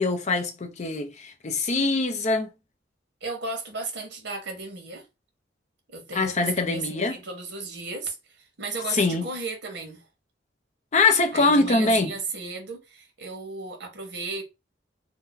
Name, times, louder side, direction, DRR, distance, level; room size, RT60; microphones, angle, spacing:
voice 1, 0.0-2.5 6.1-7.2 8.9-9.2 10.9-12.1, left 3 dB, 40° left, 0.5 m, -23 dB
voice 2, 3.2-5.1 5.9-10.1 11.3-14.4, right 3 dB, 60° right, 1.0 m, -35 dB
2.7 x 2.1 x 3.8 m
head